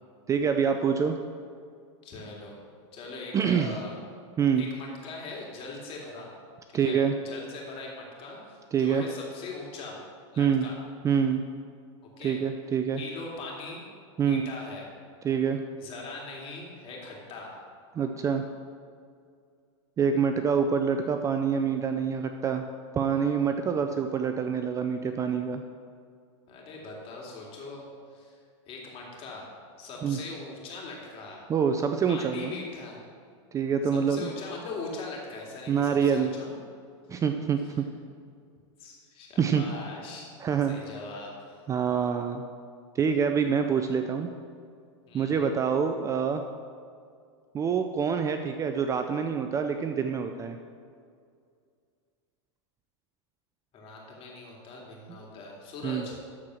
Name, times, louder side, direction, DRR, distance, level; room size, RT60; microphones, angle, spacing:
voice 1, 0.3-1.2 3.3-3.7 4.4-4.7 6.7-7.1 8.7-9.0 10.4-10.7 11.0-11.4 12.2-13.0 14.2-14.5 15.2-15.6 17.9-18.4 20.0-22.6 22.9-25.6 30.0-30.2 31.5-32.6 33.5-34.3 35.7-36.3 37.1-37.8 39.4-39.6 40.4-40.8 41.7-42.4 42.9-44.3 45.1-46.4 47.5-50.6 55.8-56.1, right 7 dB, 20° right, 7 dB, 0.4 m, -26 dB
voice 2, 2.0-2.6 2.9-4.0 4.6-6.3 6.7-7.0 7.2-10.0 10.3-10.8 12.0-12.4 13.0-13.8 14.2-14.8 15.8-17.6 26.5-28.4 28.7-29.5 29.8-31.5 32.1-33.0 34.1-36.5 38.8-40.3 40.7-41.6 45.1-45.5 53.7-56.1, left 3 dB, 35° left, -2 dB, 2.7 m, -41 dB
13.0 x 4.6 x 6.3 m, 2.2 s
supercardioid pair, 130°, 16 cm